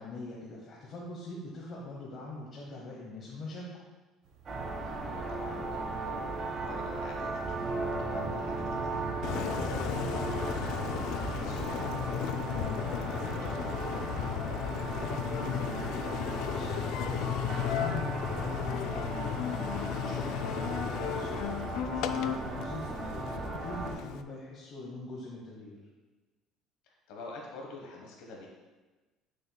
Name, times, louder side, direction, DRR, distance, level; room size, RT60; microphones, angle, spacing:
voice 1, 0.0-3.7 14.6-19.4 19.7-25.8, left 2 dB, 40° left, -4 dB, 1.0 m, -43 dB
sound 1, 4.2-16.5, right 3 dB, 60° right, 1.0 m, -44 dB
sound 2, 4.5-23.9, right 3 dB, 35° right, 1.2 m, -37 dB
voice 2, 4.8-9.0 9.5-13.8 20.2-20.4 26.9-28.5, left 3 dB, 85° left, 0 dB, 1.1 m, -46 dB
Engine, 9.2-24.2, left 10 dB, 70° left, 0.3 m, -35 dB
9.0 x 6.4 x 2.3 m, 1.2 s
cardioid pair, 155°, 0 cm